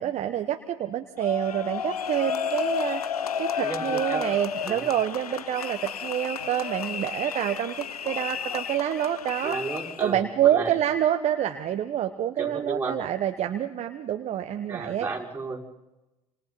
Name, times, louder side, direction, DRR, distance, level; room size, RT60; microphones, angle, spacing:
voice 1, 0.0-3.0 3.4-9.6 10.0-15.1, right 11 dB, 35° right, 7 dB, 1.2 m, -27 dB
sound 1, 1.2-10.1, left 8 dB, 85° left, 0.7 m, -32 dB
voice 2, 3.6-4.3 4.7-4.9 9.4-10.7 12.4-13.1 14.7-15.6, right 3 dB, 10° right, -4 dB, 5.7 m, -33 dB
28.5 x 27.0 x 4.1 m, 1.0 s
figure-of-eight pair, 75°, 19 cm